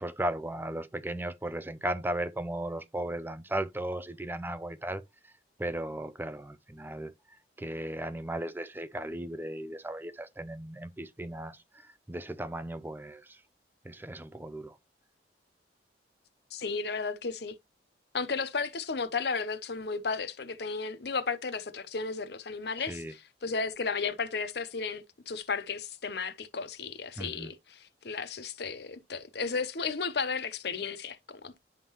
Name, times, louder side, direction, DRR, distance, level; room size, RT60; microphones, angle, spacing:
voice 1, 0.0-5.3 5.6-7.1 7.6-13.4 13.8-14.8 22.9-23.1 27.2-27.5, right 1 dB, 10° right, 0.5 m, -36 dB
voice 2, 16.5-17.5 18.1-31.6, left 4 dB, 60° left, 0.7 m, -34 dB
11.0 x 3.7 x 2.9 m
head